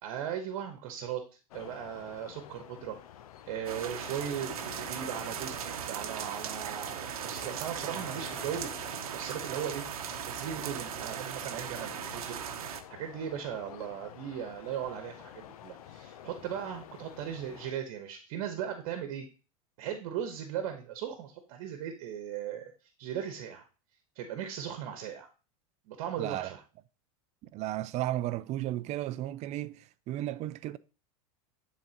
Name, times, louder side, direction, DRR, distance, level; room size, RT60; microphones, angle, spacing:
voice 1, 0.0-1.2 1.5-3.0 3.4-8.8 9.1-12.4 12.6-19.3 19.8-22.7 23.0-23.6 24.2-25.3 25.9-26.6, right 9 dB, 60° right, 1.1 m, -38 dB
sound 1, 1.5-17.7, left 10 dB, 80° left, 0.6 m, -49 dB
sound 2, 3.7-12.8, right 9 dB, 85° right, 0.8 m, -38 dB
voice 2, 26.2-26.5 27.4-30.8, right 14 dB, 40° right, 0.4 m, -34 dB
10.5 x 3.8 x 2.9 m
hypercardioid pair, 110°, 18 cm